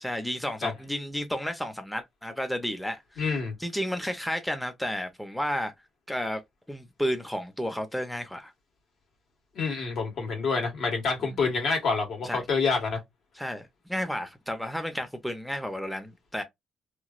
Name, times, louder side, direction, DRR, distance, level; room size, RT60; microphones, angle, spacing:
voice 1, 0.0-5.7 6.1-6.4 6.7-8.5 11.2-11.4 12.2-12.4 13.3-16.4, equal, 5° left, 0.6 m, -32 dB
voice 2, 3.2-3.5 9.5-13.0, left 4 dB, 70° left, 1.6 m, -27 dB
3.0 x 2.7 x 2.4 m
cardioid pair, 90°, 0 cm